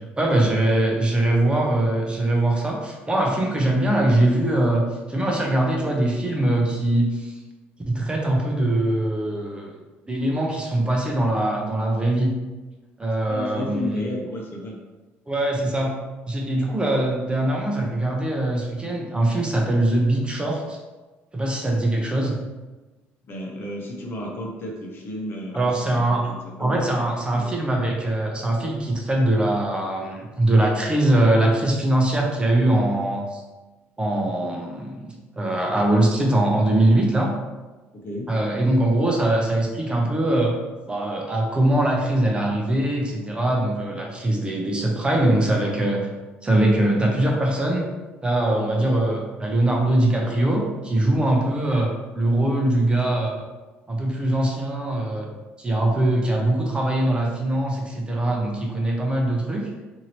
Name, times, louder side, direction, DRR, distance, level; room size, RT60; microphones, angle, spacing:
voice 1, 0.2-7.4 7.9-9.7 10.1-12.3 13.0-14.0 15.3-16.0 16.3-20.8 21.3-22.4 25.5-26.2 26.6-33.4 34.0-37.3 38.3-40.5 40.9-46.1 46.4-47.8 48.2-53.4 53.9-55.3 55.6-59.7, right 1 dB, 20° right, -1 dB, 0.6 m, -22 dB
voice 2, 13.2-14.8 23.2-26.9 27.3-27.7 37.9-38.3 55.7-55.8, left 1 dB, 45° left, -1 dB, 0.8 m, -33 dB
2.8 x 2.7 x 2.9 m, 1.2 s
supercardioid pair, 80°, 5 cm